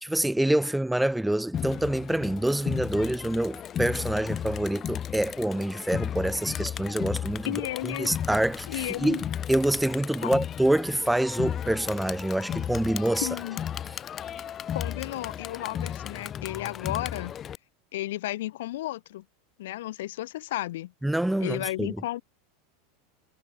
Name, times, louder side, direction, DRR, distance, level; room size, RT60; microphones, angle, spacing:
voice 1, 0.0-7.5 7.8-13.3 21.0-22.0, right 1 dB, 5° right, 1.6 m, -26 dB
Crowd, 1.5-17.6, left 9 dB, 35° left, 3.2 m, -35 dB
voice 2, 7.4-8.1 8.7-9.2 10.2-10.3 13.2-13.6 14.7-17.3 17.9-19.2 19.6-20.9 21.4-22.2, left 15 dB, 70° left, 5.0 m, -33 dB
hypercardioid pair, 100°, 0 cm